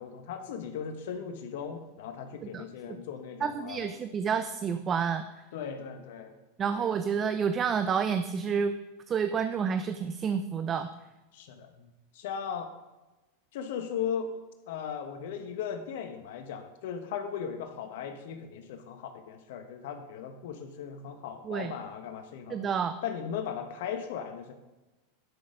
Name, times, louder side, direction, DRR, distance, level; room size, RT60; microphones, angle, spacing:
voice 1, 0.0-3.9 5.5-6.3 6.7-6.9 11.3-12.7 13.5-14.3 14.7-22.7 23.0-24.5, left 7 dB, 65° left, 7 dB, 1.3 m, -37 dB
voice 2, 3.4-5.3 6.6-8.7 9.1-10.9 21.4-21.7 22.5-22.9, right 6 dB, 30° right, 10 dB, 0.6 m, -29 dB
11.5 x 6.4 x 5.2 m, 1.1 s
hypercardioid pair, 100°, 0 cm